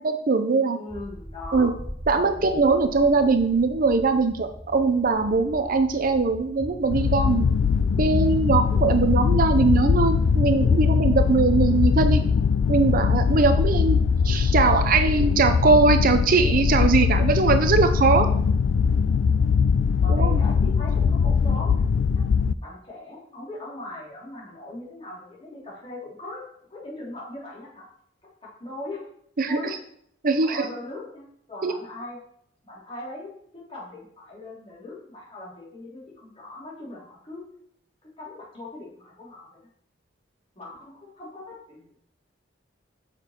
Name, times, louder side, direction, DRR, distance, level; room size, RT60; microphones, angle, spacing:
voice 1, 0.0-0.8 1.5-1.7 2.1-7.5 8.0-12.2 12.7-14.0 14.2-18.3 20.1-20.4 29.4-29.8 30.2-30.7 31.6-31.7, right 4 dB, 50° right, 8 dB, 0.6 m, -21 dB
voice 2, 0.7-1.7 2.1-2.5 20.0-21.7 22.1-22.2 22.6-26.4 26.7-27.9 28.4-29.0 29.5-29.8 30.4-32.2 32.6-37.4 38.0-39.6 40.6-42.0, left 2 dB, 30° left, -5 dB, 3.5 m, -39 dB
sound 1, 0.9-12.4, equal, 10° left, 0.8 m, -42 dB
sound 2, 6.9-22.5, left 6 dB, 80° left, 0.3 m, -21 dB
6.9 x 6.7 x 4.4 m, 0.67 s
head